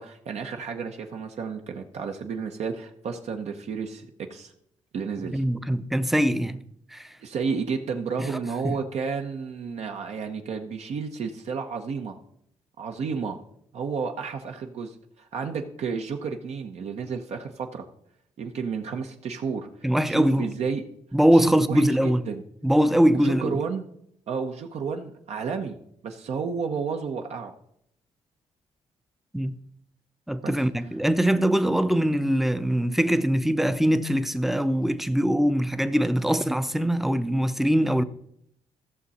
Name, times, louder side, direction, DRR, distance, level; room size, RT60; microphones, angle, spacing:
voice 1, 0.0-4.5 4.9-5.4 7.2-12.2 12.8-13.4 13.7-17.9 18.4-19.7 20.1-20.8 21.3-22.4 23.1-23.9 24.3-25.8 26.0-27.5 30.4-30.5, right 5 dB, 70° right, 0.9 m, -31 dB
voice 2, 5.3-6.6 6.9-7.1 8.2-8.3 8.6-8.7 19.8-20.5 21.1-22.2 22.6-23.6 29.3-29.6 30.3-38.0, equal, ahead, 0.6 m, -22 dB
14.5 x 6.4 x 4.2 m
cardioid pair, 90°, 12 cm